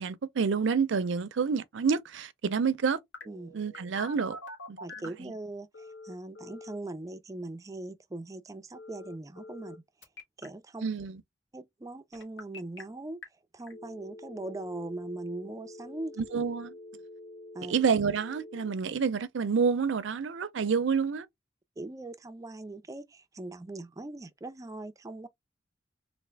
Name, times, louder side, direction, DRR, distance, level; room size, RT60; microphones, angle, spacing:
voice 1, 0.0-3.0 3.5-4.4 4.7-4.8 5.2-5.3 10.8-11.2 16.2-16.7 17.7-21.3, right 5 dB, 80° right, 0.5 m, -28 dB
Telephone, 3.1-5.2 5.7-6.8 8.7-9.8 10.0-10.5 12.1-12.8 13.2-13.3 13.7-18.7, left 2 dB, 70° left, 1.4 m, -46 dB
voice 2, 3.3-3.6 4.8-9.8 10.4-10.9 11.5-13.2 13.5-16.2 17.5-17.7 21.8-25.3, right 2 dB, 20° right, 0.4 m, -40 dB
3.4 x 2.5 x 3.2 m
head